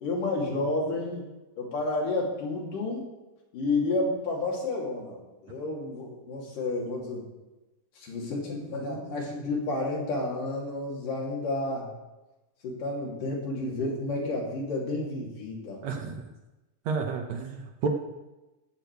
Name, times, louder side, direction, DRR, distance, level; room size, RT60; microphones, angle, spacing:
voice 1, 0.0-1.2 1.6-3.1 3.5-7.3 8.0-11.9 12.6-15.8, left 2 dB, 75° left, -2 dB, 4.3 m, -31 dB
voice 2, 15.8-16.2 16.9-17.9, right 5 dB, 65° right, 3 dB, 2.0 m, -31 dB
15.5 x 8.8 x 4.7 m, 1.1 s
omnidirectional pair, 3.8 m